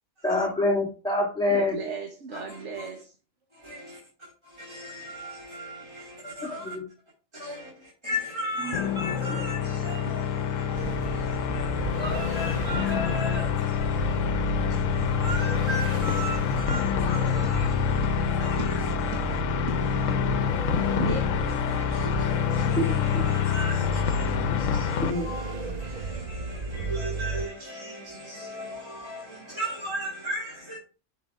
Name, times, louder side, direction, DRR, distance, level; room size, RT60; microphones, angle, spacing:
voice 1, 0.2-1.8 6.6-6.9 8.6-8.8 9.2-9.4 22.8-23.3 25.0-25.3, left 2 dB, 5° left, 1.8 m, -26 dB
voice 2, 1.5-3.1 10.9-11.0 11.5-11.6 18.0-18.1 18.6-18.7 19.1-19.2 19.7-19.8 21.0-21.9 24.9-25.0, right 4 dB, 65° right, 1.4 m, -36 dB
voice 3, 2.3-2.9 3.5-4.0 4.4-6.8 7.3-19.4 20.0-20.1 21.6-30.8, equal, 20° right, 3.2 m, -37 dB
sound 1, 8.6-25.1, left 9 dB, 80° left, 1.0 m, -27 dB
sound 2, 10.7-27.5, right 4 dB, 40° right, 0.6 m, -33 dB
10.5 x 5.3 x 3.5 m
omnidirectional pair, 1.3 m